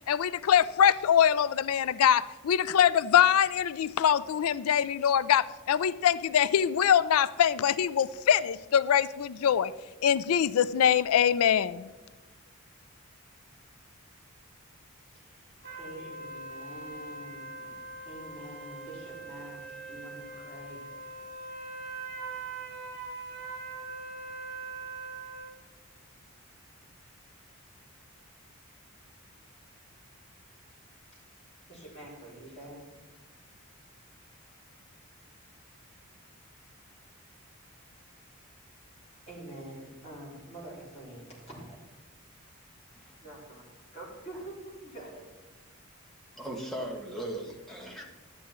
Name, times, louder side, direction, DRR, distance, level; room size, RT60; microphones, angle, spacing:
voice 1, 0.1-9.7 10.0-11.9, left 9 dB, 85° left, 17 dB, 0.4 m, -24 dB
voice 2, 15.1-17.8 18.1-20.9 31.1-31.2 31.7-32.9 39.3-41.8 43.2-43.6 43.9-45.2, right 1 dB, 30° left, -6 dB, 3.8 m, -46 dB
sound 1, 15.6-25.5, right 3 dB, 55° right, 4.4 m, -42 dB
voice 3, 46.3-48.1, right 1 dB, ahead, -1 dB, 1.5 m, -38 dB
12.0 x 9.2 x 4.4 m, 1.2 s
head